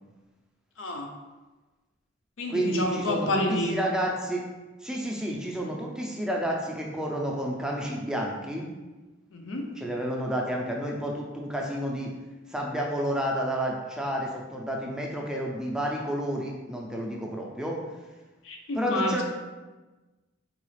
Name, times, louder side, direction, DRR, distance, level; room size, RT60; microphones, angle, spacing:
voice 1, 0.8-1.1 2.4-3.8 9.3-9.7 18.4-19.2, left 1 dB, 70° left, 2 dB, 0.5 m, -29 dB
voice 2, 2.5-4.4 4.8-8.7 9.8-12.1 12.5-17.8 18.7-19.2, equal, 5° right, -1 dB, 0.4 m, -30 dB
3.8 x 2.3 x 3.2 m, 1.2 s
head